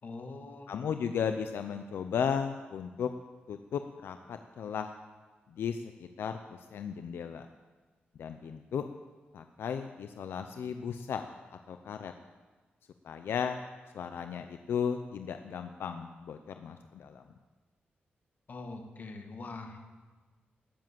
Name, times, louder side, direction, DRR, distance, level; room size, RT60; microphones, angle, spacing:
voice 1, 0.0-0.7 18.5-19.8, left 3 dB, 50° left, 4 dB, 2.0 m, -43 dB
voice 2, 0.7-3.1 3.5-4.9 5.5-7.5 8.2-8.9 9.3-11.2 11.5-12.1 13.0-13.6 13.9-17.2, left 7 dB, 90° left, 7 dB, 0.6 m, -35 dB
18.5 x 7.6 x 7.6 m, 1.3 s
wide cardioid pair, 100°, 4 cm